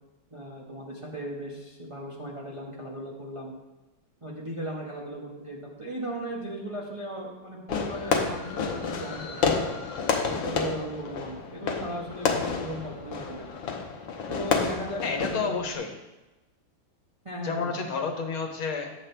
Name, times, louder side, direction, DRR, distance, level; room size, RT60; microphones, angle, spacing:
voice 1, 0.3-3.5 4.2-9.6 10.2-13.6 14.3-15.5 17.2-17.8, right 1 dB, 20° right, -3 dB, 0.8 m, -37 dB
Fireworks, 7.7-15.8, left 5 dB, 70° left, 1.6 m, -30 dB
voice 2, 15.0-15.9 17.4-18.9, left 5 dB, 90° left, 3 dB, 2.0 m, -30 dB
10.0 x 7.5 x 3.3 m, 1.1 s
omnidirectional pair, 2.2 m